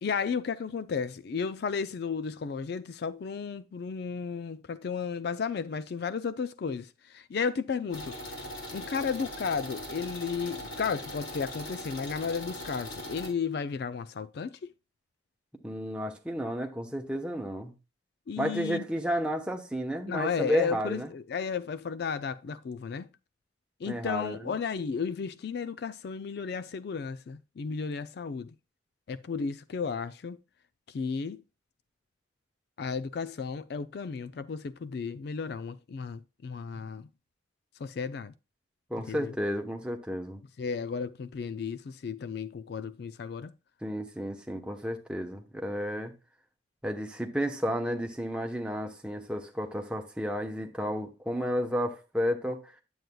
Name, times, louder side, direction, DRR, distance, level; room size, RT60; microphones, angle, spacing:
voice 1, 0.0-8.4 8.7-14.7 18.3-18.8 20.1-23.1 23.8-28.5 29.1-30.4 30.9-31.4 32.8-37.1 37.8-38.3 39.1-39.3 40.6-43.5, left 5 dB, 55° left, 0.3 m, -33 dB
sound 1, 7.9-13.3, left 1 dB, 90° left, 3.7 m, -40 dB
voice 2, 15.6-17.7 18.4-21.1 23.9-24.5 38.9-40.4 43.8-46.1 46.8-52.7, equal, 5° right, 0.9 m, -32 dB
9.1 x 7.9 x 2.3 m
head